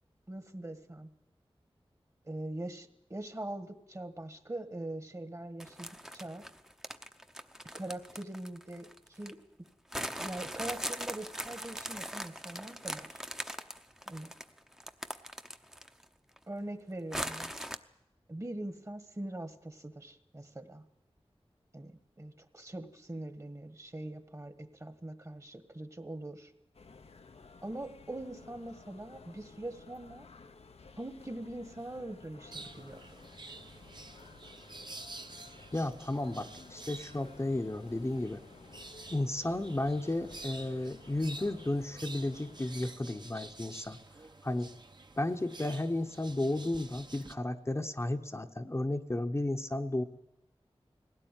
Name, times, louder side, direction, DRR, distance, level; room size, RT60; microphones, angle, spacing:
voice 1, 0.3-1.1 2.2-6.4 7.7-9.4 10.2-13.1 14.1-14.3 16.5-17.5 18.3-20.8 21.7-21.9 22.2-26.5 27.6-30.3 31.0-33.0, right 1 dB, 30° right, 9 dB, 1.5 m, -42 dB
sound 1, 5.6-9.3 9.9-16.0 16.4-16.5 17.1-17.8, equal, 5° right, 0.8 m, -40 dB
sound 2, 26.7-43.0, left 4 dB, 85° left, 0.9 m, -55 dB
sound 3, 32.5-47.3, right 2 dB, 45° right, 1.1 m, -50 dB
voice 2, 35.7-38.4 39.1-44.0 44.4-44.7 45.2-50.0, left 1 dB, 25° left, 5 dB, 0.9 m, -33 dB
20.0 x 17.0 x 9.2 m, 0.93 s
wide cardioid pair, 75°, 10 cm